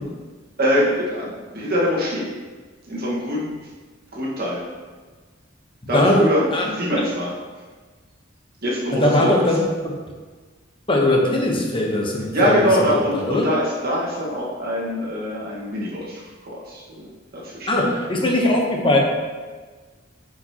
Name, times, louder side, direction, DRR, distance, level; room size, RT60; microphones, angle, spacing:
voice 1, 0.6-2.3 2.9-3.5 4.1-4.6 5.9-7.4 8.6-9.5 12.3-16.2 16.5-17.7, equal, 50° right, -5 dB, 1.6 m, -23 dB
voice 2, 5.9-6.7 8.9-9.9 10.9-12.9 13.1-13.5 17.7-19.0, left 1 dB, 25° left, 0 dB, 1.0 m, -20 dB
8.3 x 4.9 x 2.9 m, 1.4 s
head